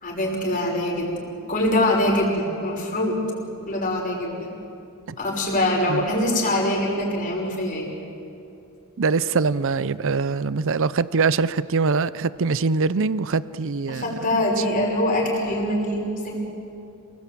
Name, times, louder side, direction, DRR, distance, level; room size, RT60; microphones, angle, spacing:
voice 1, 0.0-3.2 3.7-4.6 5.2-7.9 13.9-16.4, left 1 dB, 40° left, -1 dB, 5.9 m, -24 dB
voice 2, 9.0-14.0 14.3-14.4, right 4 dB, 60° right, 17 dB, 0.6 m, -23 dB
28.0 x 19.5 x 8.5 m, 2.7 s
head